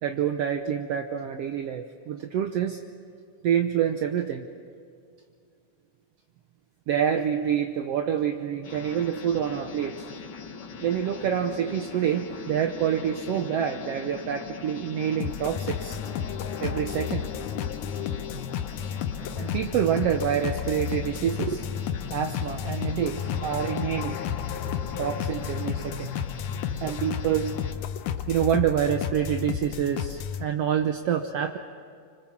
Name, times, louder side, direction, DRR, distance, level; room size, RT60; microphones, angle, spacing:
voice 1, 0.0-2.8 3.4-4.4 6.9-10.1 10.8-16.0 16.6-17.3 19.4-21.6 22.1-24.2 25.0-26.1 26.8-27.6 28.3-31.6, right 9 dB, 70° right, 6 dB, 1.7 m, -27 dB
sound 1, 8.6-27.7, left 5 dB, 50° left, 1.7 m, -40 dB
sound 2, 15.2-30.4, left 9 dB, 80° left, 2.4 m, -32 dB
26.0 x 25.5 x 7.4 m, 2.3 s
omnidirectional pair, 3.4 m